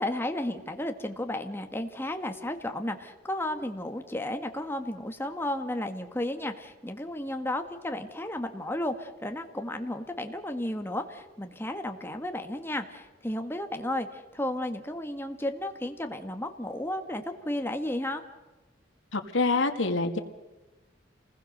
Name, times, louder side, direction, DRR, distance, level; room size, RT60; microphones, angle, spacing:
voice 1, 0.0-18.2, left 1 dB, 10° left, 6 dB, 1.7 m, -33 dB
voice 2, 19.1-20.2, left 3 dB, 85° left, 5 dB, 2.1 m, -26 dB
29.0 x 20.0 x 6.7 m, 1.1 s
head